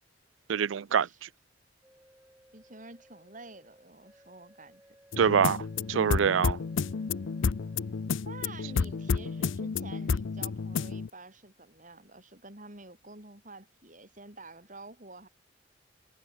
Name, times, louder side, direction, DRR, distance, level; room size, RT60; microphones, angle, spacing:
voice 1, 0.5-1.3 5.2-6.6, right 7 dB, 85° right, 0.4 m, -26 dB
sound 1, 1.8-8.1 8.6-9.6, equal, 10° right, 5.8 m, -60 dB
voice 2, 2.5-4.8 8.2-15.3, right 2 dB, 40° right, 6.8 m, -49 dB
sound 2, 5.1-11.1, left 5 dB, 85° left, 0.6 m, -31 dB
head